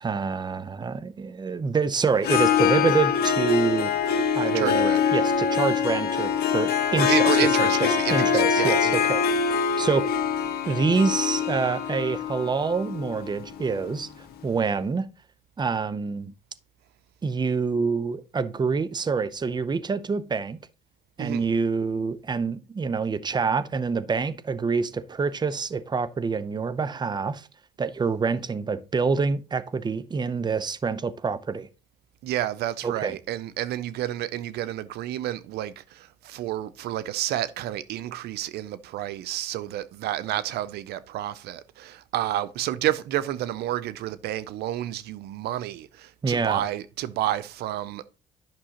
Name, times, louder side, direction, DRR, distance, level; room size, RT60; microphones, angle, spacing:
voice 1, 0.0-3.9 4.3-7.3 7.6-7.7 8.1-9.2 9.8-10.2 10.7-15.1 15.6-16.3 17.2-20.6 21.2-27.5 27.8-31.7 32.8-33.2 46.2-46.6, right 5 dB, 25° right, 0.6 m, -26 dB
Harp, 2.2-14.1, left 7 dB, 70° left, 1.6 m, -24 dB
voice 2, 4.5-5.0 7.0-9.0 21.2-21.5 32.2-48.1, right 13 dB, 75° right, 0.5 m, -30 dB
10.5 x 6.1 x 2.9 m
supercardioid pair, 75°, 17 cm